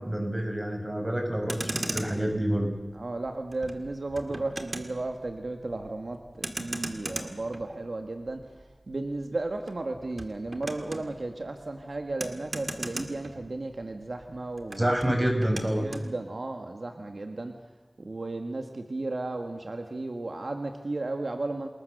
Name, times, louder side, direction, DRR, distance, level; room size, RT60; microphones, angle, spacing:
voice 1, 0.0-2.7 14.8-15.9, right 1 dB, 25° right, 3 dB, 6.2 m, -27 dB
Motor vehicle (road), 1.3-13.9 14.2-16.1, right 1 dB, 55° right, 2.4 m, -39 dB
voice 2, 2.9-8.4 8.9-14.9 15.8-17.5 18.0-21.7, right 2 dB, 80° right, 5 dB, 1.7 m, -34 dB
28.5 x 21.0 x 6.7 m, 1.2 s
wide cardioid pair, 50°, 0 cm